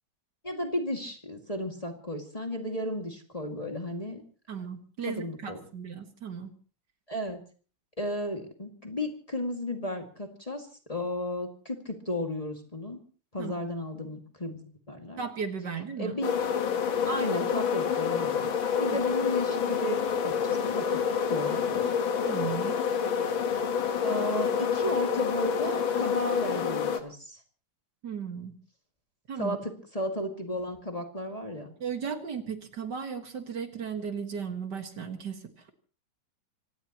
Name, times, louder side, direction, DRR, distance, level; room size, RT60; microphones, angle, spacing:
voice 1, 0.4-4.2 5.1-5.6 7.1-7.4 8.0-13.0 13.3-14.6 14.9-15.2 16.0-16.4 17.1-18.5 18.8-21.0 21.3-21.9 24.0-27.4 29.4-31.7, left 1 dB, 20° left, 2 dB, 2.2 m, -34 dB
voice 2, 4.5-6.5 13.4-13.5 15.2-16.2 18.9-19.0 22.3-22.8 28.0-28.6 29.3-29.6 31.8-35.4, right 6 dB, 60° right, 6 dB, 2.3 m, -35 dB
sound 1, 16.2-27.0, left 7 dB, 80° left, 2.2 m, -28 dB
26.0 x 17.5 x 3.0 m, 0.40 s
omnidirectional pair, 2.1 m